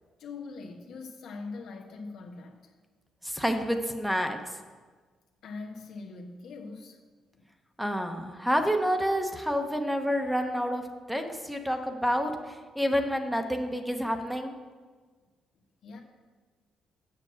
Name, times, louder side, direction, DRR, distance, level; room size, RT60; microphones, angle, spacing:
voice 1, 0.2-2.7 5.4-7.0 7.3-7.5 15.8-16.0, left 3 dB, 75° left, 1 dB, 1.2 m, -42 dB
voice 2, 3.2-4.6 7.8-10.8 11.1-14.6, equal, ahead, 5 dB, 0.9 m, -29 dB
7.9 x 6.1 x 7.5 m, 1.4 s
cardioid pair, 90°, 0 cm